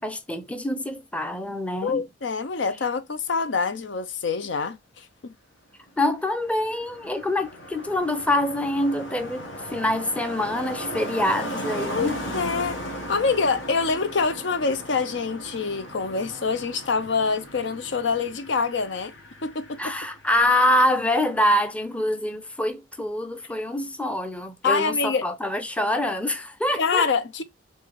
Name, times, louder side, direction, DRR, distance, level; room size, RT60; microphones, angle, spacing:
voice 1, 0.0-2.1 6.0-12.2 19.8-27.1, left 1 dB, 5° left, 0.6 m, -25 dB
voice 2, 1.8-5.3 12.0-12.1 12.3-12.8 13.1-19.1 19.4-19.9 24.6-25.2 26.8-27.4, left 5 dB, 65° left, 0.6 m, -25 dB
Car passing by, 5.9-20.7 20.9-21.3, equal, 85° left, 1.5 m, -37 dB
4.5 x 3.2 x 3.3 m
head